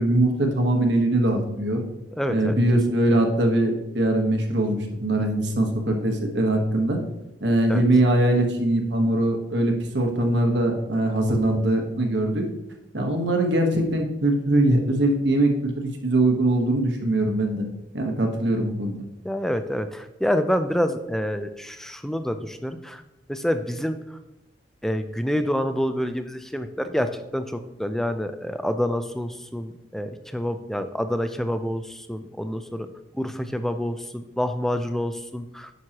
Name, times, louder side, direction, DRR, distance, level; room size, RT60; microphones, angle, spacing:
voice 1, 0.0-1.8 2.3-7.0 7.4-12.4 12.9-17.7 17.9-19.0, right 1 dB, 70° right, 3 dB, 1.2 m, -22 dB
voice 2, 2.2-2.5 7.7-7.8 19.2-23.0 23.3-24.2 24.8-32.9 33.2-35.7, equal, ahead, 9 dB, 0.4 m, -27 dB
9.3 x 6.2 x 2.9 m, 0.92 s
head